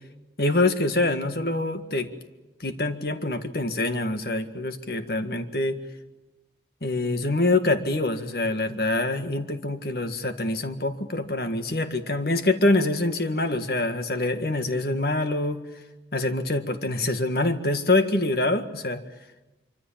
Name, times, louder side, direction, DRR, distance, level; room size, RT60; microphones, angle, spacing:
voice 1, 0.4-2.1 2.6-5.8 6.8-15.6 16.1-19.0, left 2 dB, 60° left, 8 dB, 1.8 m, -25 dB
25.0 x 25.0 x 7.4 m, 1.1 s
head